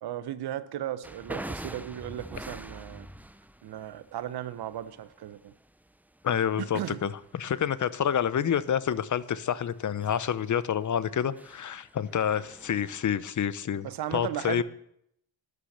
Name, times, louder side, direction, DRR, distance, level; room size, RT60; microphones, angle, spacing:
voice 1, 0.0-3.1 3.6-5.5 6.6-7.0 13.8-14.6, right 11 dB, 80° right, 0.9 m, -36 dB
sound 1, 1.0-13.6, right 1 dB, 5° right, 0.6 m, -45 dB
voice 2, 6.2-14.6, left 8 dB, 50° left, 0.8 m, -28 dB
11.0 x 10.5 x 6.6 m
cardioid pair, 85°, 38 cm